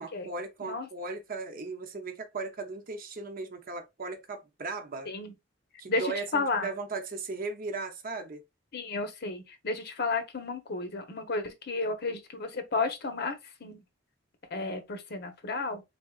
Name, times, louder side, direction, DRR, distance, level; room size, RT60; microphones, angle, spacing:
voice 1, 0.0-5.1 5.8-8.4, right 3 dB, 50° right, 0.7 m, -37 dB
voice 2, 5.9-6.7 8.7-13.4 13.6-13.8 14.5-15.8, left 3 dB, 60° left, 0.9 m, -32 dB
3.7 x 3.5 x 2.3 m
head